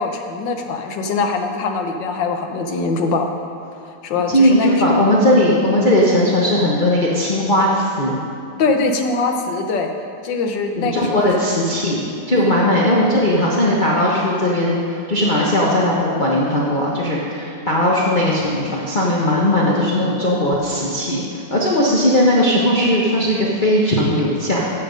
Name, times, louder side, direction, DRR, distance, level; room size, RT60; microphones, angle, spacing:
voice 1, 0.0-3.3 3.8-4.8 8.6-9.9 10.2-11.2 12.3-12.7, left 3 dB, 85° left, 4 dB, 1.6 m, -22 dB
voice 2, 4.3-8.2 10.8-24.7, left 1 dB, 30° left, -5 dB, 1.1 m, -18 dB
13.5 x 7.3 x 5.2 m, 2.5 s
omnidirectional pair, 1.9 m